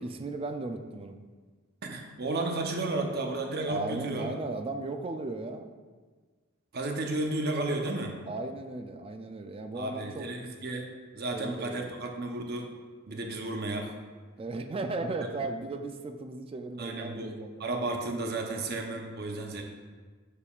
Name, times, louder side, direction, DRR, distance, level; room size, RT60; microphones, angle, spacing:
voice 1, 0.0-1.2 3.7-5.7 8.3-10.3 11.3-11.9 14.4-17.7, right 2 dB, 30° right, 6 dB, 0.3 m, -36 dB
voice 2, 1.8-4.3 6.7-8.2 9.7-10.9 11.1-12.7 13.1-13.9 16.8-17.3 17.6-19.6, right 2 dB, 55° right, 3 dB, 0.8 m, -33 dB
7.0 x 6.6 x 2.4 m, 1.4 s
head